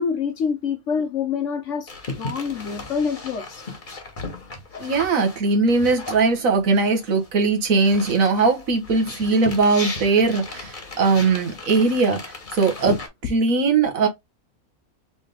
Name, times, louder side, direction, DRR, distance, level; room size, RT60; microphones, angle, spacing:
voice 1, 0.0-1.9 2.2-3.6, left 6 dB, 60° left, 1.2 m, -26 dB
sound 1, 1.9-7.3 7.6-13.1, left 3 dB, 35° left, 1.3 m, -36 dB
voice 2, 4.8-12.2 12.5-13.0 13.3-14.1, right 4 dB, 65° right, 1.5 m, -20 dB
4.0 x 3.4 x 3.4 m
omnidirectional pair, 1.6 m